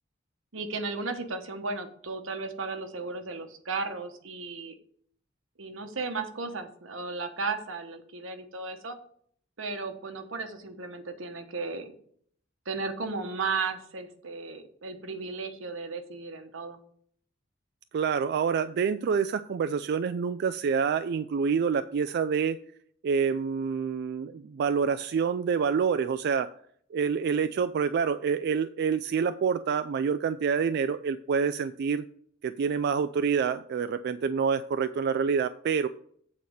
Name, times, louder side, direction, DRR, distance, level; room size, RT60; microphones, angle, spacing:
voice 1, 0.5-4.8 5.6-9.0 9.6-11.9 12.7-16.8, right 4 dB, 90° right, 7 dB, 1.1 m, -35 dB
voice 2, 17.9-22.6 23.0-26.5 26.9-32.0 32.4-35.9, right 6 dB, 55° right, 11 dB, 0.3 m, -27 dB
8.2 x 4.2 x 6.4 m, 0.62 s
head